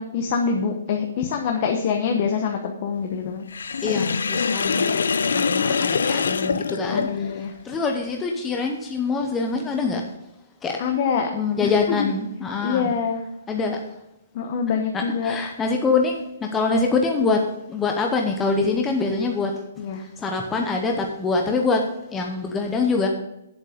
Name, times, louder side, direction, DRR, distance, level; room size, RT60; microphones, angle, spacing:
voice 1, 0.0-3.5 6.9-7.5 10.8-11.3 11.6-12.1 12.6-13.2 14.3-15.4 19.8-20.0, left 6 dB, 40° left, 3 dB, 1.0 m, -25 dB
Sink (filling or washing), 3.5-7.5, left 5 dB, 85° left, 0.4 m, -24 dB
voice 2, 3.8-10.1 10.6-10.8 11.3-12.9 13.5-13.8 14.9-23.1, left 4 dB, 10° left, 2 dB, 0.8 m, -25 dB
8.1 x 7.7 x 5.1 m, 0.86 s
hypercardioid pair, 160°, 0 cm